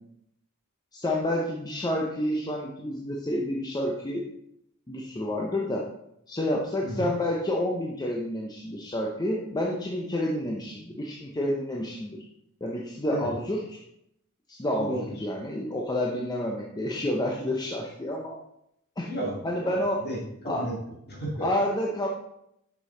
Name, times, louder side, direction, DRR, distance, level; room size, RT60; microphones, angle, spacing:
voice 1, 0.9-4.2 4.9-5.9 6.3-12.2 12.6-13.8 14.5-18.4 19.0-19.1 19.4-20.1 20.4-20.7 21.4-22.1, left 1 dB, 20° left, -2 dB, 0.6 m, -29 dB
voice 2, 14.8-15.1 19.1-19.7 20.0-20.7 21.1-21.5, right 1 dB, 45° left, -2 dB, 2.2 m, -33 dB
6.8 x 5.3 x 3.8 m, 0.77 s
head